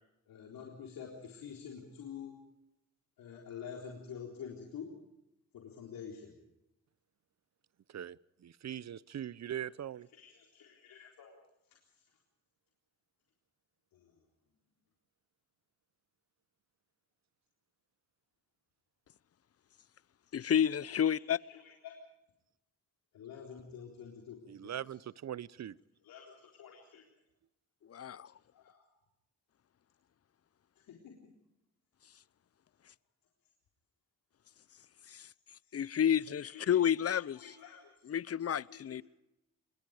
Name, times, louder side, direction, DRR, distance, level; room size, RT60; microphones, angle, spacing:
voice 1, 0.3-2.3 3.2-4.9 5.5-6.3 9.5-9.7 10.1-11.4 11.9-12.0 13.9-14.2 20.9-21.9 23.1-25.0 26.0-27.0 28.5-28.8 30.8-31.1 35.6-35.8 36.3-38.1 38.7-39.0, left 7 dB, 80° left, -1 dB, 3.9 m, -49 dB
voice 2, 7.9-10.1 24.5-25.8, right 10 dB, 50° right, 21 dB, 0.8 m, -41 dB
voice 3, 20.3-21.4 27.9-28.3 35.1-35.3 35.7-37.4 38.1-39.0, left 9 dB, 45° left, 22 dB, 0.7 m, -30 dB
27.0 x 22.0 x 5.0 m, 0.87 s
supercardioid pair, 55°, 34 cm